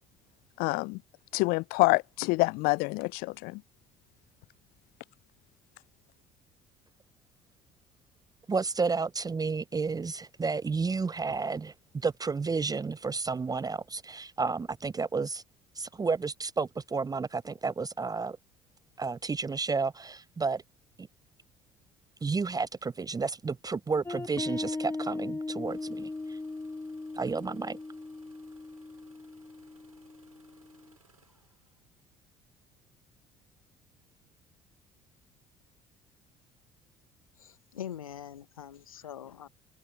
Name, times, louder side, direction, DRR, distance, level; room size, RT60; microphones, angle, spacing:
voice 1, 0.6-1.0 1.3-3.6, left 26 dB, 55° left, 0.4 m, -27 dB
voice 2, 8.5-15.4 15.8-18.4 19.0-20.6 22.2-26.4 27.2-27.8, right 4 dB, 20° right, 0.8 m, -31 dB
sound 1, 24.1-30.9, left 3 dB, 15° left, 1.7 m, -38 dB
Engine starting, 25.7-32.1 33.1-33.4 34.0-34.4 35.0-35.1, right 3 dB, 90° right, 4.6 m, -64 dB
voice 3, 37.4-39.5, left 10 dB, 80° left, 1.3 m, -43 dB
open air
figure-of-eight pair, 55°, 18 cm